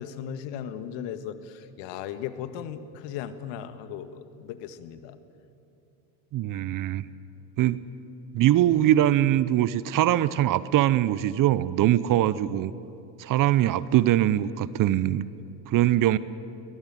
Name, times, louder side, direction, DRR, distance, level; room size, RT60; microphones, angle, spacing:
voice 1, 0.0-5.2, left 9 dB, 60° left, 11 dB, 1.8 m, -37 dB
voice 2, 6.3-7.1 7.6-7.8 8.3-12.7 13.2-15.2 15.7-16.2, right 13 dB, 40° right, 17 dB, 0.8 m, -22 dB
22.5 x 20.0 x 9.2 m, 2.7 s
hypercardioid pair, 90°, 50 cm